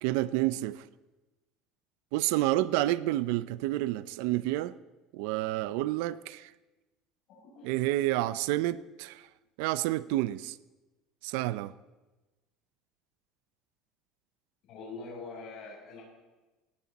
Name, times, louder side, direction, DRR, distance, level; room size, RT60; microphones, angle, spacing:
voice 1, 0.0-0.8 2.1-4.7 5.1-6.5 7.6-9.3 9.6-10.6 11.2-11.7, right 16 dB, 80° right, 0.5 m, -29 dB
voice 2, 7.3-8.0 14.7-16.0, left 3 dB, 45° left, 7.1 m, -44 dB
18.5 x 16.5 x 4.1 m
cardioid pair, 165°, 0 cm